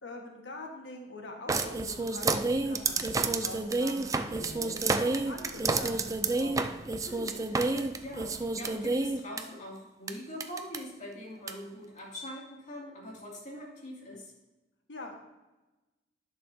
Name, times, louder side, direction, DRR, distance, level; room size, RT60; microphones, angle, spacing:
voice 1, 0.0-6.7 14.9-15.1, left 2 dB, 75° left, 1 dB, 1.5 m, -44 dB
sound 1, 1.5-9.4 10.1-10.2 10.4-10.8 11.5-11.6, right 3 dB, 20° right, 0.4 m, -29 dB
voice 2, 7.0-14.3, equal, 40° left, -3 dB, 2.5 m, -43 dB
10.5 x 6.5 x 2.7 m, 1.1 s
head